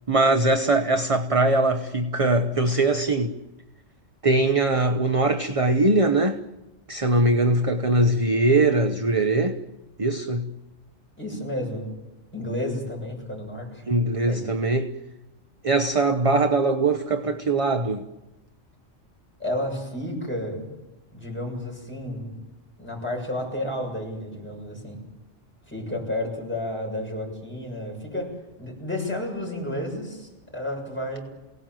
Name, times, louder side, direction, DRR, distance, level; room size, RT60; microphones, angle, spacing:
voice 1, 0.1-3.3 4.2-6.4 6.9-9.6 10.0-10.5 13.9-14.9 15.6-18.0, right 2 dB, 30° right, 0.9 m, -21 dB
voice 2, 11.2-11.9 12.3-13.8 14.2-14.5 19.4-20.7 21.1-22.4 22.8-25.0 25.7-31.2, left 1 dB, 10° left, 6.8 m, -31 dB
28.0 x 18.0 x 7.7 m
omnidirectional pair, 1.3 m